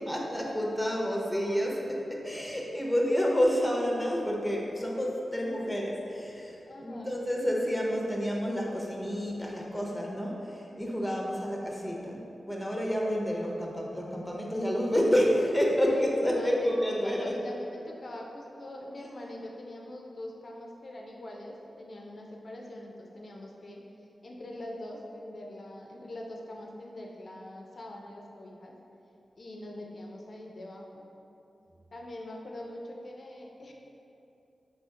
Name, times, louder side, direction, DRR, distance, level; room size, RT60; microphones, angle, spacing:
voice 1, 0.1-17.3, equal, 5° left, -2 dB, 0.6 m, -29 dB
voice 2, 6.7-7.1 11.2-11.4 15.8-16.1 16.3-23.8 24.2-28.8 29.4-31.1 31.9-33.7, left 1 dB, 50° left, -1 dB, 0.4 m, -43 dB
4.2 x 2.7 x 3.6 m, 2.8 s
wide cardioid pair, 100°, 0 cm